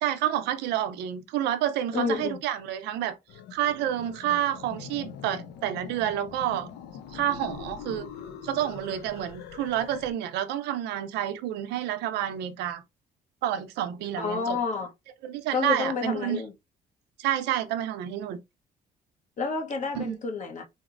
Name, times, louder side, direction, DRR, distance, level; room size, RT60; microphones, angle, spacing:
voice 1, 0.0-3.2 3.5-6.7 7.1-8.1 8.4-12.8 13.4-14.6 15.2-16.4 17.2-18.4 19.9-20.2, right 11 dB, 85° right, 0.5 m, -29 dB
voice 2, 1.9-2.4 14.2-14.9 15.5-16.5 19.4-20.6, left 4 dB, 45° left, 0.8 m, -29 dB
sound 1, 3.3-10.1, left 7 dB, 85° left, 0.5 m, -43 dB
3.9 x 2.0 x 2.4 m
cardioid pair, 110°, 17 cm